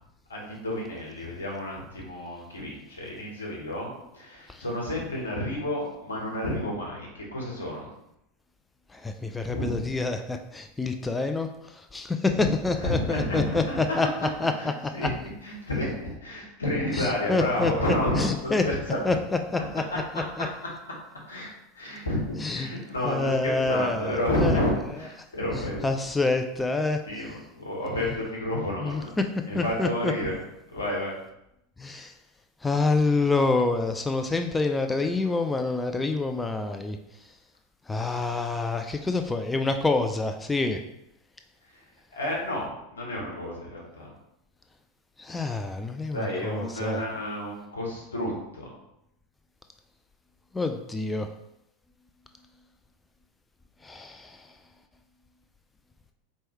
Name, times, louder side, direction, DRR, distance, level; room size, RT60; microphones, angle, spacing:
voice 1, 0.3-7.9 9.5-10.0 12.3-14.0 14.6-15.2 15.4-19.2 19.7-20.0 21.3-25.9 27.0-29.2 29.4-30.4 30.7-31.2 41.7-41.8 42.1-44.1 46.1-48.7, left 1 dB, 85° left, -3 dB, 1.2 m, -30 dB
voice 2, 9.0-11.5 11.9-14.1 14.4-14.5 15.0-15.1 17.0-18.6 19.1-19.2 19.5-19.8 20.4-20.5 22.4-22.7 23.1-24.1 24.4-24.6 25.8-27.0 28.8-29.0 29.5-30.1 31.8-32.1 32.6-37.0 37.9-40.8 45.2-47.0 50.5-51.3 53.8-54.3, left 3 dB, 15° left, 6 dB, 0.3 m, -27 dB
4.3 x 3.1 x 3.0 m, 0.82 s
figure-of-eight pair, 85°, 0 cm